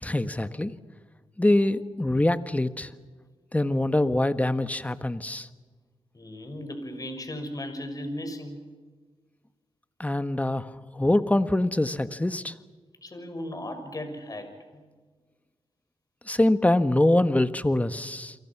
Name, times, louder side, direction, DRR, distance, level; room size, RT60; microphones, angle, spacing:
voice 1, 0.0-0.7 1.4-2.9 3.5-5.5 10.0-12.5 16.3-18.3, left 1 dB, 15° left, 11 dB, 1.5 m, -24 dB
voice 2, 6.1-8.6 13.0-14.9, left 1 dB, 40° left, 7 dB, 6.1 m, -36 dB
30.0 x 23.5 x 6.1 m, 1.4 s
cardioid pair, 60°, 10 cm